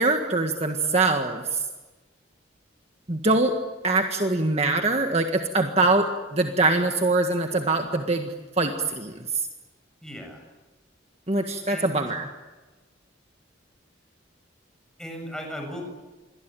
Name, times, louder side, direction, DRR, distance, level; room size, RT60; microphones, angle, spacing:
voice 1, 0.0-1.6 3.1-3.5 3.8-9.4 11.3-12.3, right 2 dB, 35° right, 4 dB, 1.7 m, -23 dB
voice 2, 10.0-10.4 11.7-12.1 15.0-15.8, equal, 5° left, 2 dB, 7.6 m, -37 dB
28.0 x 23.0 x 9.1 m, 1.2 s
head